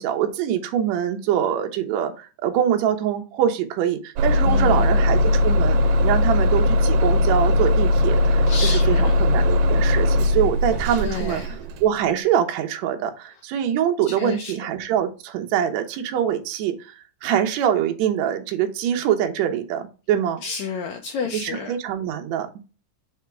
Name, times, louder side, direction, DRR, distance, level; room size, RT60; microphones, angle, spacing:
voice 1, 0.0-11.4 11.8-20.4 21.3-22.7, right 9 dB, 70° right, 5 dB, 1.9 m, -24 dB
Bus / Engine starting, 4.2-11.9, left 2 dB, 85° right, 2.3 m, -19 dB
voice 2, 4.5-4.9 8.5-9.2 11.0-11.6 14.0-14.6 20.4-21.8, left 6 dB, 80° left, 4 dB, 1.7 m, -30 dB
6.1 x 3.5 x 4.5 m, 0.33 s
omnidirectional pair, 3.8 m